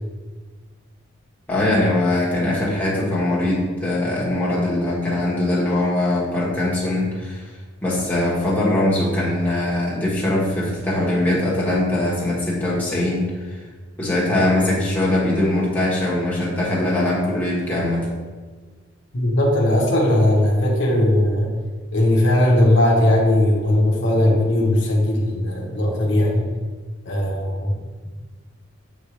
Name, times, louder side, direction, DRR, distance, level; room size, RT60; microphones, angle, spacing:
voice 1, 1.5-7.4 7.8-13.5 14.0-18.1, left 1 dB, 10° left, -7 dB, 1.4 m, -21 dB
voice 2, 19.1-21.5 21.9-26.5 27.0-27.7, left 1 dB, 65° left, -2 dB, 1.0 m, -18 dB
7.5 x 3.8 x 3.3 m, 1.4 s
head